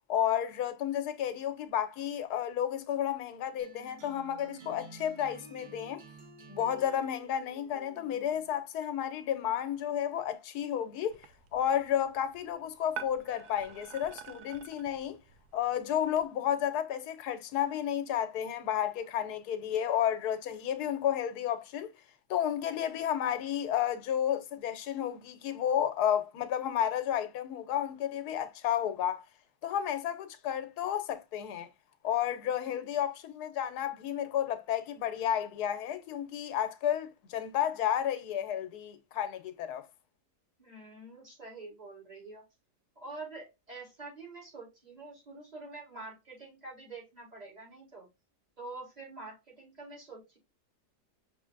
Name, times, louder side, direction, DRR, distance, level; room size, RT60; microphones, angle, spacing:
voice 1, 0.1-6.0 6.5-11.2 11.5-15.2 15.5-21.9 22.3-29.3 29.6-31.7 32.0-39.9, left 10 dB, 75° left, 1.2 m, -32 dB
sound 1, 3.6-8.7, right 4 dB, 45° right, 0.6 m, -51 dB
sound 2, 11.1-16.2, right 8 dB, 75° right, 1.1 m, -48 dB
voice 2, 40.6-42.4 43.0-48.1 48.6-50.4, right 3 dB, 25° right, 1.9 m, -46 dB
5.6 x 3.2 x 2.4 m
omnidirectional pair, 1.7 m